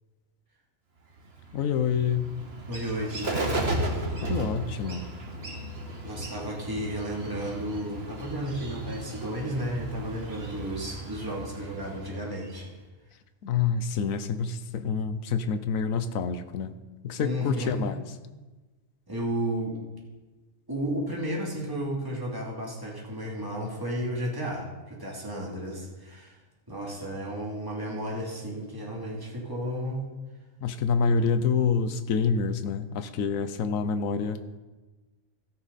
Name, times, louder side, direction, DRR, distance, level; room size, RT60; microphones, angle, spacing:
Bird, 1.2-12.7, right 2 dB, 50° right, 1.9 m, -35 dB
voice 1, 1.5-2.3 4.2-5.0 13.4-16.7 17.0-18.0 30.6-34.4, left 6 dB, 85° left, 10 dB, 1.2 m, -27 dB
voice 2, 2.7-3.6 6.0-12.7 17.2-17.8 19.1-19.8 20.7-26.4 26.7-30.0, equal, 15° right, -3 dB, 2.9 m, -33 dB
16.5 x 13.5 x 4.2 m, 1.2 s
omnidirectional pair, 1.4 m